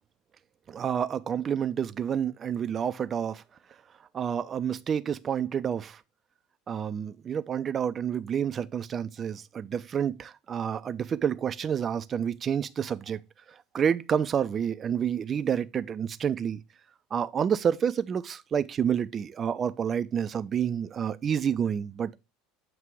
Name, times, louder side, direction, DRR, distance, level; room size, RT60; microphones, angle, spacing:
voice 1, 0.7-3.4 4.1-6.0 6.7-13.2 13.7-16.6 17.1-22.2, right 8 dB, 35° right, 0.5 m, -29 dB
7.4 x 3.0 x 4.7 m
hypercardioid pair, 70°, 0 cm